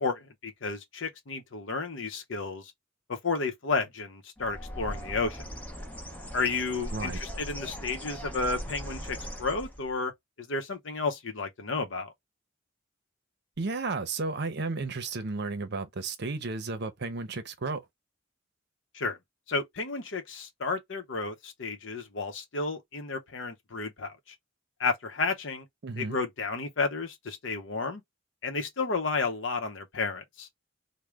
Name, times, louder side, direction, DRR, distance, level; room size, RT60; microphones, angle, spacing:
voice 1, 0.0-2.7 3.1-5.5 6.3-10.1 10.4-12.1 18.9-19.2 19.5-24.1 24.8-25.7 26.0-28.0 28.4-30.5, left 4 dB, 65° left, 0.8 m, -32 dB
Bird, 4.4-9.9, equal, 10° left, 0.7 m, -39 dB
voice 2, 13.6-17.8 25.8-26.2, right 3 dB, 55° right, 0.7 m, -33 dB
3.2 x 2.1 x 3.5 m
head